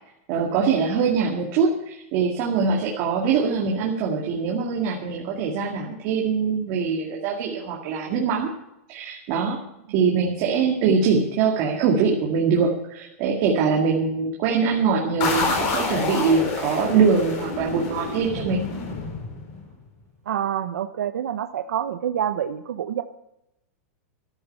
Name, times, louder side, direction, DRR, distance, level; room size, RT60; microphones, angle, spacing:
voice 1, 0.3-8.5 8.9-9.6 9.9-18.7, right 5 dB, 35° right, -1 dB, 2.1 m, -23 dB
sound 1, 15.2-19.7, left 4 dB, 35° left, 4.4 m, -28 dB
voice 2, 20.3-23.0, right 10 dB, 85° right, 8 dB, 0.9 m, -27 dB
13.5 x 12.5 x 5.5 m, 0.87 s
supercardioid pair, 165°, 8 cm